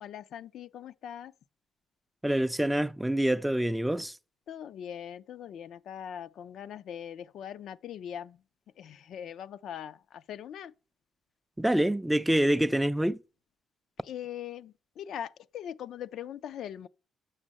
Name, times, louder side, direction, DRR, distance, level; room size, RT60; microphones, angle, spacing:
voice 1, 0.0-1.3 4.5-8.4 8.8-10.7 14.0-16.9, left 9 dB, 70° left, 0.3 m, -41 dB
voice 2, 2.2-4.2 11.6-13.2, right 1 dB, 5° right, 0.4 m, -26 dB
6.4 x 6.0 x 7.4 m
cardioid pair, 90°, 0 cm